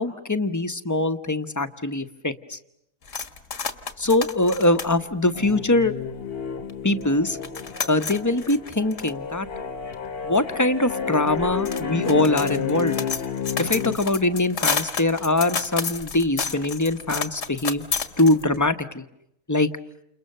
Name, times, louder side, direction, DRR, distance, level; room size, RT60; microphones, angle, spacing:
voice 1, 0.0-2.6 4.0-5.9 6.8-7.4 7.9-9.5 10.2-13.0 13.6-17.9 18.2-19.0 19.5-19.7, left 2 dB, 15° left, 10 dB, 1.0 m, -22 dB
sound 1, 3.1-6.2 6.7-6.8 7.0-18.7, left 5 dB, 65° left, 1.9 m, -32 dB
sound 2, 5.3-14.0, left 7 dB, 45° left, 1.4 m, -31 dB
29.5 x 29.0 x 6.8 m, 0.80 s
omnidirectional pair, 1.4 m